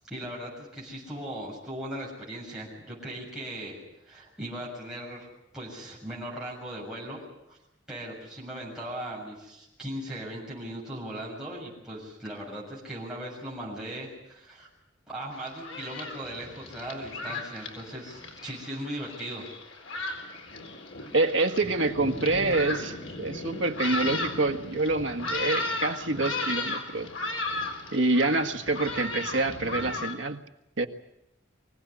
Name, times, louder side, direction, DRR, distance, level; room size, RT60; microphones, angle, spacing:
voice 1, 0.1-5.3 5.5-7.2 7.5-7.6 7.9-14.7 15.1-19.5, right 1 dB, 5° right, -6 dB, 7.0 m, -38 dB
Thunderstorm, 15.3-30.1, left 2 dB, 80° left, 4.1 m, -35 dB
voice 2, 21.1-27.1 27.9-30.4 30.8-30.9, right 2 dB, 75° right, 4 dB, 1.6 m, -27 dB
24.5 x 17.0 x 9.8 m, 0.88 s
head